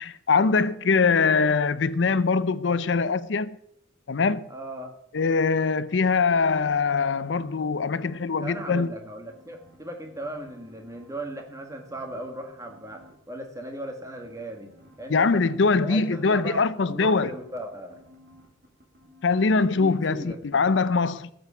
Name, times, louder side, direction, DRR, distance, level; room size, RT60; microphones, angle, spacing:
voice 1, 0.0-3.6 4.1-4.4 5.1-8.9 15.1-17.3 19.2-21.3, left 4 dB, 65° left, 0.6 m, -23 dB
voice 2, 4.5-4.9 8.4-14.7 15.0-16.6 16.9-18.0 19.8-20.7, right 1 dB, 15° right, 1.6 m, -37 dB
sound 1, 7.7-8.9 9.2-11.3 11.6-13.1 14.0-19.6 19.9-20.0, equal, 50° right, 2.8 m, -55 dB
13.5 x 7.9 x 5.7 m
head